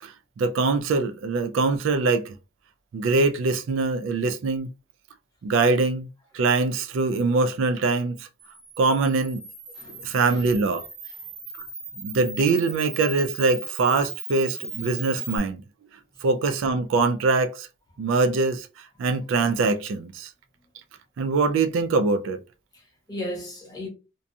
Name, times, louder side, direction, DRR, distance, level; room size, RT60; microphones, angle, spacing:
voice 1, 0.0-2.4 2.9-4.7 5.4-6.1 6.3-8.3 8.8-9.4 10.0-10.9 12.0-15.6 16.2-17.7 18.0-18.7 19.0-20.3 21.2-22.4, right 3 dB, 70° right, 0.3 m, -23 dB
Camera, 8.4-15.4, right 4 dB, 30° right, 0.8 m, -38 dB
voice 2, 9.7-10.5 11.0-11.1 22.7-23.9, left 1 dB, 20° left, 0.9 m, -37 dB
2.6 x 2.2 x 2.6 m
head